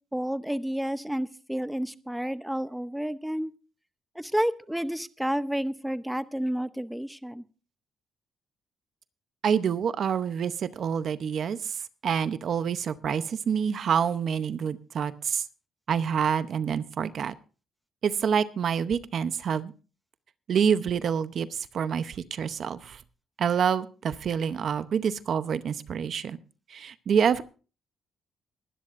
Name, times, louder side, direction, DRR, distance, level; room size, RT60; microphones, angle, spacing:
voice 1, 0.1-3.5 4.2-7.4, equal, 5° right, 13 dB, 0.7 m, -30 dB
voice 2, 9.4-15.4 15.9-17.3 18.0-19.7 20.5-23.0 23.4-26.4 26.7-27.4, right 7 dB, 60° right, 13 dB, 0.7 m, -27 dB
21.5 x 11.5 x 2.6 m, 0.35 s
cardioid pair, 90°, 0 cm